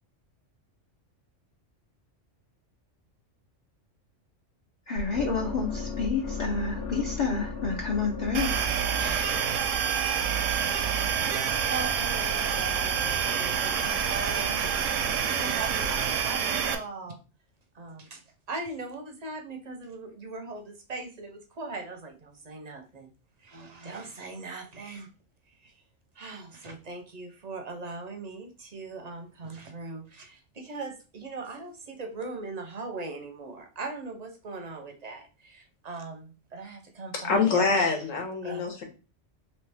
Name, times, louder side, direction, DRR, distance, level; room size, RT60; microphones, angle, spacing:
voice 1, 4.9-8.5 9.0-9.4, left 4 dB, 50° left, 0 dB, 0.6 m, -30 dB
sound 1, 5.0-11.0, left 4 dB, 65° left, 1.1 m, -37 dB
sound 2, 8.3-16.7, right 7 dB, 80° right, 0.9 m, -27 dB
voice 2, 11.6-17.2 17.7-18.2 18.5-23.1 23.4-25.1 25.5-25.8 26.2-37.9 38.4-38.8, right 3 dB, 45° right, 5 dB, 0.5 m, -40 dB
voice 3, 37.2-38.8, left 4 dB, 85° left, 3 dB, 1.3 m, -25 dB
3.1 x 2.8 x 3.3 m, 0.33 s
omnidirectional pair, 1.3 m